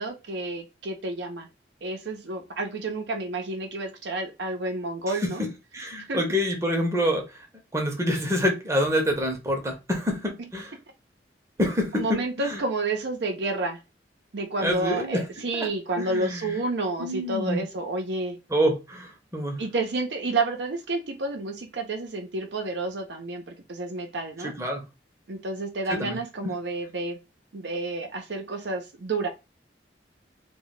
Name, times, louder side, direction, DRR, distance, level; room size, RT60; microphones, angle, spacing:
voice 1, 0.0-1.5 1.8-5.4 6.1-6.2 10.4-10.5 11.9-13.8 14.3-18.4 19.6-24.6 25.3-27.2 27.5-29.3, right 2 dB, 80° right, 0.7 m, -30 dB
voice 2, 5.7-7.4 7.7-10.7 11.6-12.6 14.6-15.2 15.5-15.7 16.0-16.6 17.0-17.6 18.5-19.6 24.4-24.8 25.9-26.5, equal, 15° right, 0.7 m, -27 dB
2.2 x 2.2 x 3.8 m
head